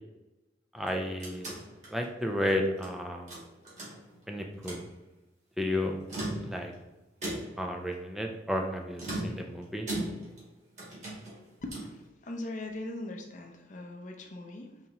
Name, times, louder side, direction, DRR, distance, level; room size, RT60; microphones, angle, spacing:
voice 1, 0.7-1.5 1.9-3.3 4.3-4.8 5.6-5.9 6.4-6.7 7.6-9.9, left 1 dB, ahead, 2 dB, 0.4 m, -32 dB
sound 1, 0.7-2.9 3.3-4.2 4.5-4.9 5.9-6.8 7.2-7.7 9.0-10.5 10.8-12.0, right 1 dB, 40° right, 1.5 m, -38 dB
voice 2, 11.6-14.8, left 1 dB, 45° left, 3 dB, 0.6 m, -40 dB
4.1 x 3.5 x 2.9 m, 1.0 s
head